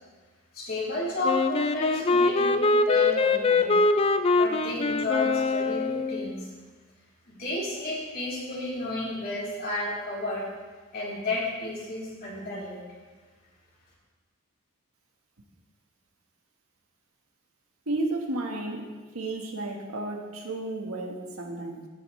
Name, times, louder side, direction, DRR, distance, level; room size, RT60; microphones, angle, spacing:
voice 1, 0.5-3.7 4.3-6.5 7.3-10.5 10.9-12.8, left 2 dB, 45° left, -8 dB, 3.8 m, -32 dB
Wind instrument woodwind instrument, 1.2-6.3, left 3 dB, 25° left, 0.3 m, -23 dB
voice 2, 17.9-18.9 19.1-21.9, right 2 dB, 85° right, 2 dB, 1.4 m, -32 dB
16.5 x 7.1 x 3.2 m, 1.4 s
head